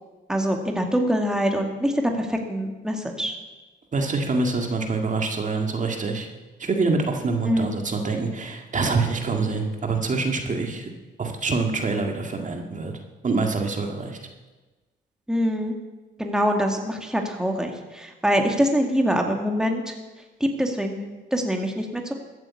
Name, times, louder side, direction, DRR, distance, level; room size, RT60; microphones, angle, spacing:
voice 1, 0.3-3.4 7.4-7.7 15.3-15.8 16.2-19.9 20.4-21.0 21.3-22.1, equal, 5° right, 2 dB, 2.2 m, -24 dB
voice 2, 3.9-6.3 6.6-10.9 11.2-12.9 13.2-14.2, right 3 dB, 40° right, 3 dB, 2.0 m, -25 dB
14.5 x 9.4 x 8.5 m, 1.2 s
cardioid pair, 90°, 20 cm